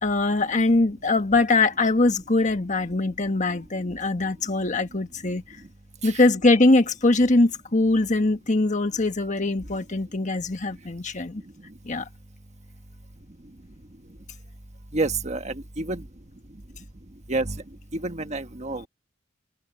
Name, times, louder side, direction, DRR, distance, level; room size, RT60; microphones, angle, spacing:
voice 1, 0.0-5.4 6.0-11.4 11.8-12.1, left 2 dB, 40° left, 1.5 m, -22 dB
voice 2, 14.9-16.0 17.3-17.6 17.9-18.9, right 2 dB, 35° right, 1.4 m, -29 dB
head